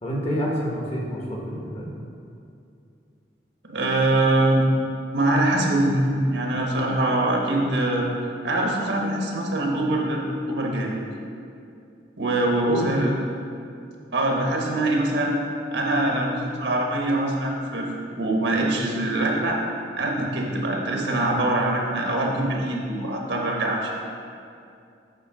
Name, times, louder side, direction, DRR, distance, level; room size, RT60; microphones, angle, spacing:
voice 1, 0.0-1.9 12.6-13.1, equal, 35° left, -2 dB, 1.3 m, -28 dB
voice 2, 3.7-4.7 5.1-8.1 8.4-10.2 10.5-11.0 12.2-13.1 14.1-15.3 15.7-17.9 18.1-19.6 20.0-23.9, right 1 dB, 75° right, -1 dB, 1.3 m, -23 dB
8.2 x 4.1 x 6.1 m, 2.5 s
head